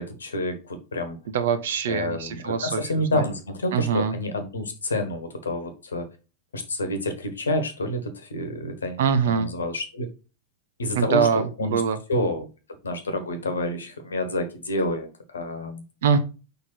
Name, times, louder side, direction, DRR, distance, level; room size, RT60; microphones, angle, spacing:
voice 1, 0.0-1.2 1.9-6.1 6.5-10.1 10.8-11.8 12.1-12.5 12.8-15.8, left 1 dB, 70° left, 8 dB, 1.3 m, -28 dB
voice 2, 1.3-3.2 3.7-4.2 9.0-9.5 10.9-12.0 16.0-16.2, right 6 dB, 60° right, 13 dB, 0.8 m, -23 dB
5.2 x 4.1 x 4.4 m, 0.32 s
figure-of-eight pair, 90°, 0 cm